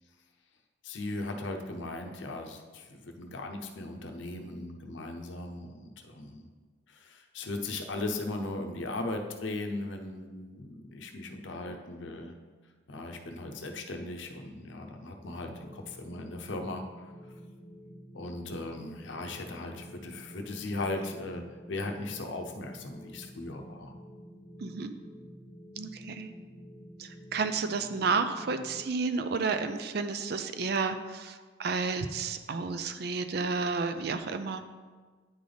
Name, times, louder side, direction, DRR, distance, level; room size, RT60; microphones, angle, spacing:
voice 1, 0.8-6.5 6.9-12.3 12.9-17.1 18.1-23.9, left 2 dB, 75° left, 4 dB, 0.7 m, -38 dB
sound 1, 15.2-28.9, equal, 15° left, 0.6 m, -50 dB
voice 2, 24.6-24.9 25.8-26.3 27.0-34.6, right 4 dB, 55° right, 9 dB, 0.4 m, -31 dB
9.6 x 3.9 x 3.4 m, 1.4 s
head